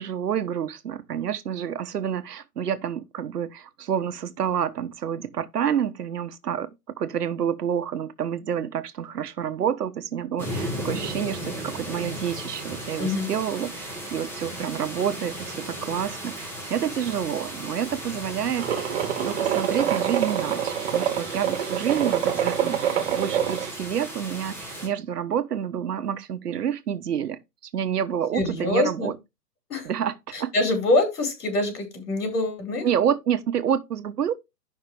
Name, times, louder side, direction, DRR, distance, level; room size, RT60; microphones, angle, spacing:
voice 1, 0.0-6.7 7.0-27.4 27.7-29.2 29.8-30.5 32.8-34.3, right 9 dB, 70° right, 1.1 m, -28 dB
sound 1, 10.4-24.9, right 1 dB, 5° left, 1.0 m, -36 dB
sound 2, 18.6-23.7, right 9 dB, 40° right, 1.5 m, -26 dB
voice 2, 28.3-29.1 29.7-29.9 30.3-32.9, left 2 dB, 70° left, 5.3 m, -25 dB
12.0 x 5.7 x 3.3 m
hypercardioid pair, 160°, 49 cm